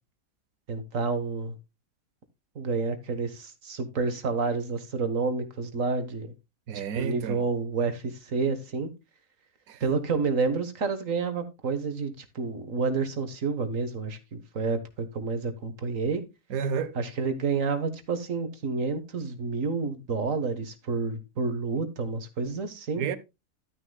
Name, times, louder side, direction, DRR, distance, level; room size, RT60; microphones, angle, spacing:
voice 1, 0.7-1.5 2.5-6.3 6.9-8.9 9.8-16.2 16.9-23.1, right 4 dB, 65° right, 1.7 m, -29 dB
voice 2, 6.7-7.4 9.7-9.8 16.5-16.9 23.0-23.2, right 6 dB, 90° right, 1.3 m, -30 dB
12.0 x 9.8 x 2.2 m
omnidirectional pair, 1.5 m